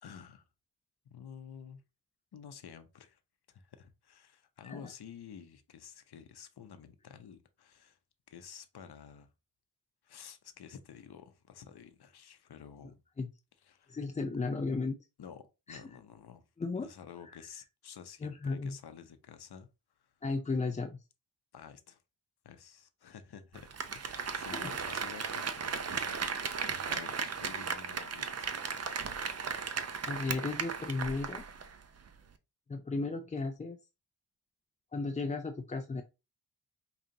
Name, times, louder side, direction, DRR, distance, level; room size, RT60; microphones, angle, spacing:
voice 1, 0.0-0.4 1.1-1.8 2.3-3.2 3.5-8.0 8.3-9.3 10.0-13.0 13.7-14.0 15.2-16.5 16.8-19.7 20.0-20.1 21.5-22.0 22.4-26.6 26.8-29.1, left 7 dB, 60° left, 0.7 m, -51 dB
voice 2, 13.9-15.0 15.7-15.8 16.6-16.9 17.3-17.4 18.2-18.8 20.2-21.0 24.5-24.7 30.1-31.4 32.7-33.8 34.9-36.0, left 3 dB, 20° left, 0.3 m, -34 dB
Applause, 23.6-31.8 32.1-32.2, right 5 dB, 35° right, 0.5 m, -36 dB
5.2 x 2.4 x 2.7 m
cardioid pair, 60°, 46 cm